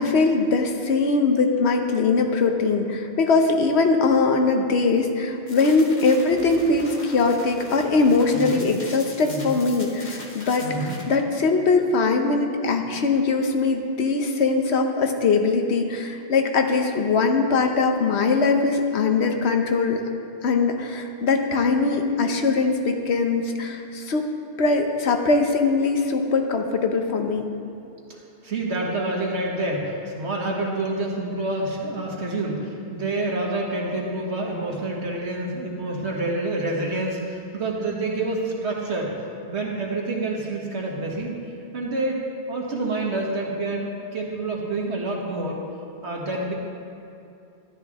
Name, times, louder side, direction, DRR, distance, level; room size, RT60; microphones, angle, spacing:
voice 1, 0.0-20.0 20.4-24.2 24.6-27.4, left 4 dB, 75° left, 4 dB, 1.1 m, -21 dB
sound 1, 5.5-11.0, left 2 dB, 45° left, 1.3 m, -41 dB
voice 2, 8.3-8.6 9.2-9.6 10.6-11.0 28.1-39.1 39.5-41.3 41.7-45.6 46.0-46.5, right 2 dB, 80° right, -2 dB, 1.8 m, -28 dB
13.0 x 10.5 x 3.6 m, 2.7 s
omnidirectional pair, 1.1 m